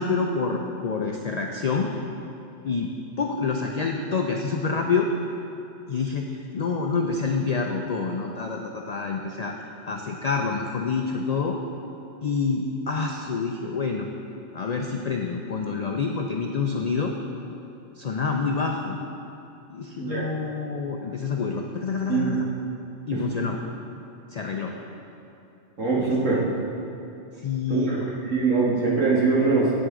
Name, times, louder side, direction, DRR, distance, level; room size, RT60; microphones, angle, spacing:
voice 1, 0.0-1.9 2.6-2.9 3.2-5.1 5.9-9.5 9.8-11.6 12.2-14.1 14.5-17.1 18.0-19.0 19.7-22.4 23.1-23.6 24.3-24.7 26.0-26.1 27.4-28.0, left 4 dB, 70° left, 2 dB, 0.3 m, -27 dB
voice 2, 25.8-26.4 27.7-29.7, right 4 dB, 90° right, -6 dB, 2.0 m, -23 dB
8.3 x 7.8 x 3.7 m, 2.8 s
omnidirectional pair, 1.3 m